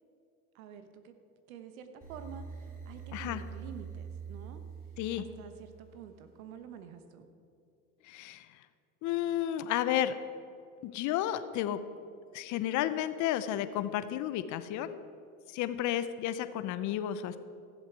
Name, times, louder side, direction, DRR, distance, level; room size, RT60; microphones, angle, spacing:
voice 1, 0.5-1.1 1.5-4.6 5.1-7.3, right 7 dB, 75° right, 8 dB, 1.2 m, -48 dB
sound 1, 2.0-6.1, right 6 dB, 20° right, 2.6 m, -45 dB
voice 2, 8.0-8.6 9.0-10.1 10.8-11.8 12.3-15.0 15.5-17.4, left 12 dB, 45° left, 12 dB, 0.8 m, -32 dB
15.0 x 7.5 x 4.7 m, 2.5 s
hypercardioid pair, 95°, 42 cm